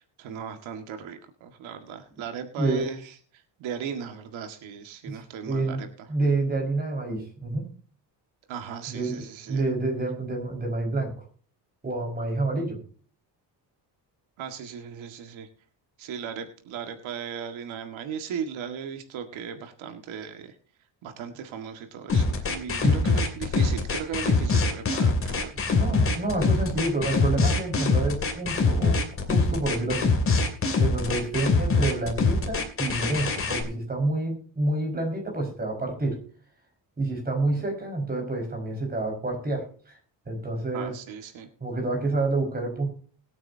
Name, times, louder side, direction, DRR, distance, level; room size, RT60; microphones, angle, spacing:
voice 1, 0.0-3.0 3.6-5.9 8.5-9.6 14.4-15.5 16.0-20.5 21.0-25.6 40.7-41.5, right 7 dB, 85° right, 6 dB, 2.0 m, -37 dB
voice 2, 2.6-2.9 5.1-5.8 6.1-7.7 8.9-11.1 11.8-12.8 22.8-23.1 25.7-30.1 30.8-36.2 37.0-40.0 40.3-40.9 41.6-42.9, right 2 dB, 20° right, 2 dB, 5.3 m, -28 dB
sound 1, 22.1-33.6, left 4 dB, 30° left, 2.7 m, -23 dB
21.5 x 8.9 x 2.8 m, 0.43 s
cardioid pair, 150°, 46 cm